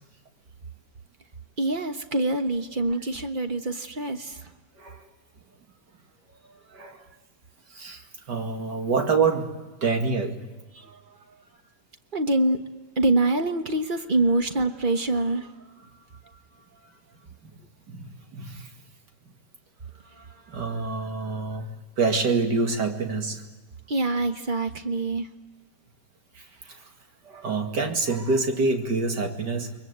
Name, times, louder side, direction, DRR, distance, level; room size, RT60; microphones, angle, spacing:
voice 1, 1.6-4.4 10.8-11.2 12.1-12.6 13.0-15.5 20.1-20.4 23.9-25.3, right 2 dB, 30° right, 1.4 m, -25 dB
voice 2, 4.7-5.1 6.7-7.1 7.7-9.5 9.8-10.5 17.4-17.6 17.9-18.7 19.2-19.3 20.5-23.4 26.3-26.9 27.2-29.8, right 4 dB, 85° right, 2.9 m, -27 dB
29.5 x 22.5 x 8.1 m
omnidirectional pair, 1.8 m